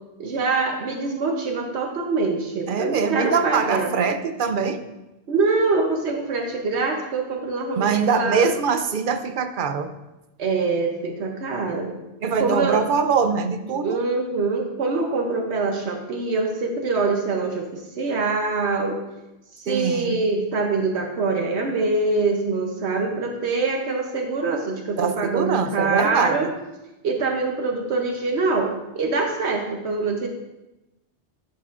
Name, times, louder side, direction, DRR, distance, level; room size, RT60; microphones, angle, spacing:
voice 1, 0.2-3.9 5.3-8.5 10.4-11.9 12.4-12.9 13.8-19.0 19.6-26.5 27.0-28.7 28.9-30.3, right 3 dB, 75° right, 2 dB, 1.1 m, -24 dB
voice 2, 2.7-4.8 7.8-9.9 12.2-14.0 19.7-20.2 25.0-26.5, right 6 dB, 55° right, 8 dB, 0.7 m, -23 dB
11.0 x 6.0 x 2.5 m, 0.99 s
omnidirectional pair, 1.1 m